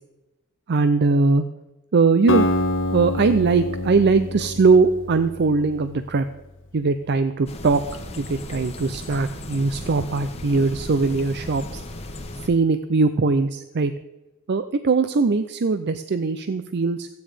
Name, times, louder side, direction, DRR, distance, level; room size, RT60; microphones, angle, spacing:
voice 1, 0.7-1.4 1.9-2.5 2.9-6.3 6.7-7.8 8.2-11.8 12.4-13.9 14.5-17.1, right 4 dB, 50° right, 11 dB, 0.5 m, -20 dB
Acoustic guitar, 2.3-6.4, left 1 dB, 60° left, 1.1 m, -26 dB
sound 1, 7.5-12.5, left 1 dB, 30° left, 1.3 m, -36 dB
14.5 x 9.3 x 5.0 m, 1.1 s
head